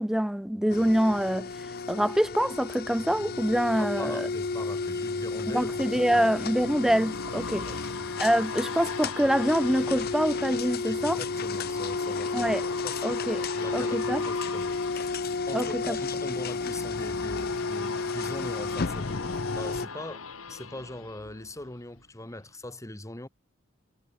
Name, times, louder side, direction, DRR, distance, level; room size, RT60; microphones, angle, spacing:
voice 1, 0.0-1.5 1.9-4.3 5.5-7.7 8.2-11.2 12.3-12.6 13.0-13.5 13.7-14.2 15.5-16.0, equal, ahead, 0.3 m, -25 dB
sound 1, 0.7-19.9, left 4 dB, 50° left, 0.7 m, -32 dB
sound 2, 3.0-12.0, right 1 dB, 75° right, 4.0 m, -51 dB
voice 2, 3.8-6.3 7.6-7.8 10.9-12.6 12.8-13.0 13.5-23.3, left 1 dB, 15° left, 1.6 m, -41 dB
sound 3, 4.4-22.0 22.4-22.5, left 4 dB, 80° left, 2.6 m, -40 dB
head